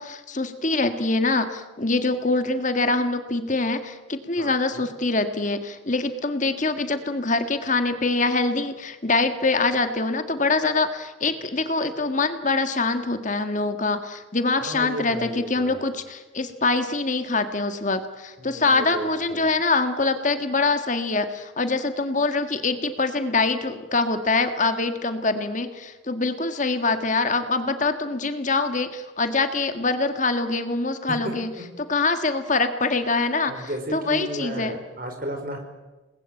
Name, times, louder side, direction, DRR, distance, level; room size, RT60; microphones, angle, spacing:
voice 1, 0.0-31.5 31.9-34.7, left 3 dB, 40° left, 8 dB, 1.7 m, -24 dB
voice 2, 4.4-4.9 14.6-15.8 18.4-19.5 31.2-31.3 31.6-31.7 33.5-35.6, right 1 dB, 45° right, 5 dB, 5.0 m, -34 dB
29.0 x 20.5 x 9.1 m, 1.1 s
head